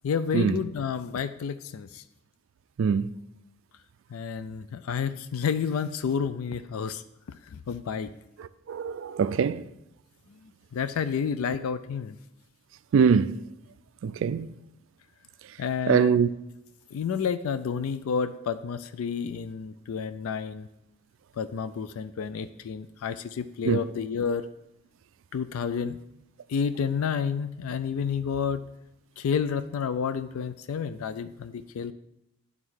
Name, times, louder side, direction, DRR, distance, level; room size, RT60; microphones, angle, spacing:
voice 1, 0.0-2.0 4.1-7.0 7.4-8.1 10.4-12.2 15.6-16.2 16.9-20.7 21.4-24.5 25.3-26.0 26.5-28.7 29.2-31.9, left 6 dB, 80° left, 0.4 m, -30 dB
voice 2, 8.7-9.6 12.9-13.4 14.0-14.5 15.9-16.3 23.7-23.8, right 6 dB, 65° right, 0.3 m, -22 dB
8.9 x 3.7 x 6.2 m
head